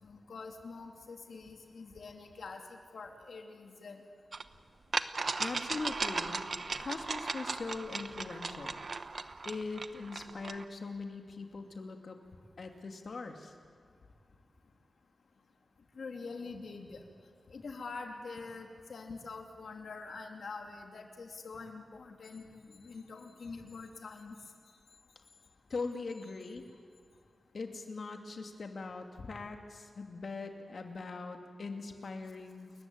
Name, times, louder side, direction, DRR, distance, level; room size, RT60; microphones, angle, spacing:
voice 1, 0.0-4.0 15.9-17.0 17.5-24.4, left 4 dB, 80° left, 3 dB, 2.8 m, -45 dB
sound 1, 4.3-4.4 4.9-10.6, right 4 dB, 50° right, 0.9 m, -37 dB
voice 2, 5.4-6.4 6.8-8.8 9.4-12.2 12.6-13.5 25.7-26.6 27.5-32.7, left 3 dB, 60° left, 4 dB, 2.5 m, -41 dB
29.5 x 14.5 x 9.5 m, 2.2 s
wide cardioid pair, 145°, 0 cm